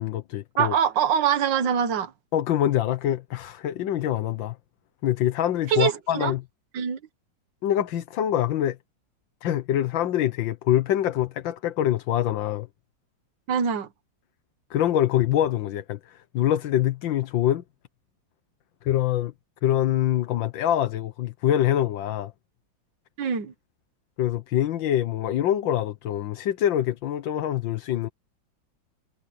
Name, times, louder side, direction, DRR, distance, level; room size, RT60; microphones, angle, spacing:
voice 1, 0.0-0.7 2.3-4.6 5.0-6.4 7.6-8.8 9.4-12.7 14.7-17.6 18.8-19.3 19.6-22.3 24.2-28.1, left 11 dB, 80° left, 1.7 m, -25 dB
voice 2, 0.6-2.1 5.7-6.3 6.7-7.0 13.5-13.9 23.2-23.5, right 7 dB, 70° right, 2.0 m, -24 dB
omnidirectional pair, 2.1 m